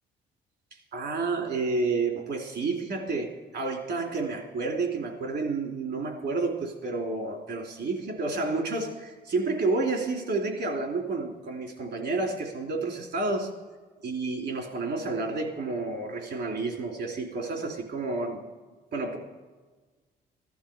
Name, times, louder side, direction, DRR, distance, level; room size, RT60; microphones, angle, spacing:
voice 1, 0.9-13.5 14.0-18.4 18.9-19.2, right 3 dB, 65° right, 2 dB, 3.0 m, -30 dB
15.0 x 12.0 x 5.0 m, 1.3 s
cardioid pair, 90°, 20 cm